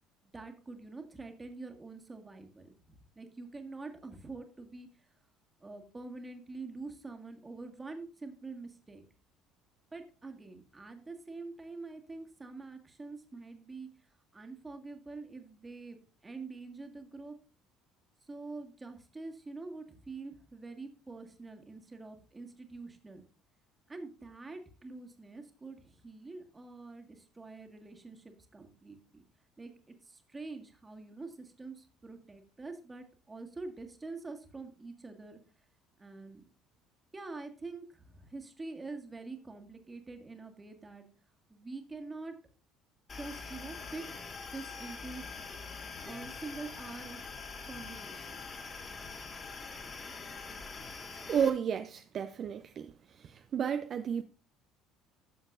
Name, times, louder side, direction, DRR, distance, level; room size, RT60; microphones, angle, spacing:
voice 1, 0.2-4.9 5.6-9.0 9.9-13.9 14.3-17.4 18.3-23.2 23.9-29.2 29.6-29.7 30.0-35.4 36.0-36.4 37.1-41.0 41.5-42.4 43.2-44.0 44.4-45.2 46.0-47.3 47.7-48.4, right 3 dB, 20° right, 1.7 m, -45 dB
sound 1, 43.1-51.5, left 4 dB, 35° left, 2.6 m, -44 dB
voice 2, 51.3-52.9 53.2-54.2, right 8 dB, 45° right, 0.5 m, -32 dB
14.0 x 7.1 x 2.5 m
figure-of-eight pair, 55°, 0 cm